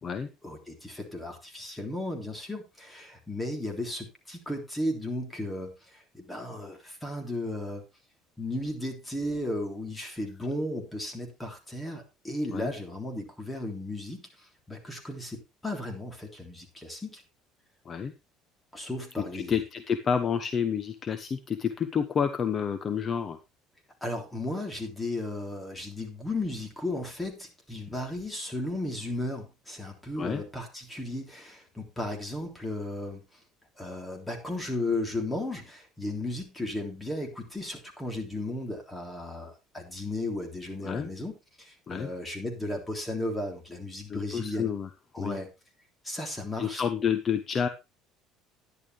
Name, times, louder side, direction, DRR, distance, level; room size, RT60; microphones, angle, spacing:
voice 1, 0.4-7.8 8.4-17.2 18.7-19.6 24.0-33.4 33.8-41.3 41.6-44.7 45.1-45.5 46.0-46.8, left 1 dB, 10° left, 2 dB, 3.4 m, -35 dB
voice 2, 19.3-23.4 30.2-30.4 40.8-41.1 41.9-42.1 44.1-44.9 45.2-45.4 46.6-47.7, left 7 dB, 35° left, 10 dB, 0.9 m, -29 dB
11.0 x 10.5 x 3.3 m, 0.26 s
cardioid pair, 120°, 0 cm